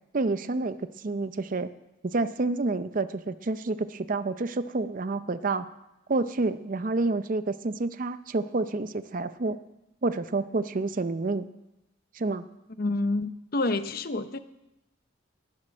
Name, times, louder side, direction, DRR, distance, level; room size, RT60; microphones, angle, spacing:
voice 1, 0.1-1.7 2.0-5.7 6.1-9.6 10.0-11.5 12.1-12.4, right 3 dB, 40° right, 12 dB, 0.5 m, -29 dB
voice 2, 12.8-14.4, left 2 dB, 50° left, 11 dB, 0.7 m, -28 dB
19.5 x 7.5 x 6.3 m, 0.92 s
head